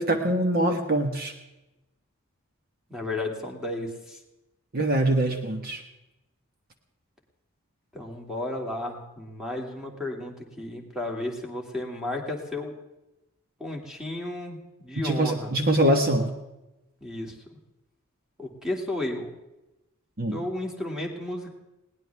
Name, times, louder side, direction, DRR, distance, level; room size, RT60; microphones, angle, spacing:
voice 1, 0.0-1.3 4.7-5.8 15.0-16.4 20.2-20.4, right 1 dB, 45° right, 4 dB, 1.4 m, -24 dB
voice 2, 2.9-4.2 7.9-12.7 13.6-15.5 17.0-17.3 18.4-19.4 20.3-21.5, left 1 dB, 5° right, 0 dB, 2.6 m, -33 dB
20.5 x 18.0 x 3.5 m, 0.97 s
head